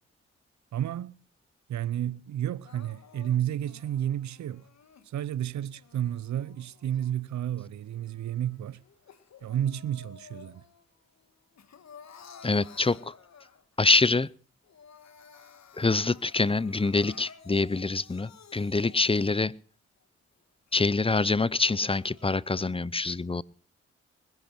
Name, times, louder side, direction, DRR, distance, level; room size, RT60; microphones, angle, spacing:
voice 1, 0.7-1.2 1.7-4.6 5.0-8.8 9.4-10.6, right 11 dB, 75° right, 0.7 m, -31 dB
Crying sobbing, 2.6-5.1 5.7-7.5 7.9-10.9 11.2-13.8 14.3-14.4 14.6-19.5 20.0-20.1 20.7-20.8 21.5-22.4, left 6 dB, 65° left, 1.9 m, -54 dB
voice 2, 12.4-13.1 13.8-14.3 15.8-19.5 20.7-23.4, left 3 dB, 20° left, 0.7 m, -25 dB
20.0 x 10.5 x 5.9 m
supercardioid pair, 50°, 29 cm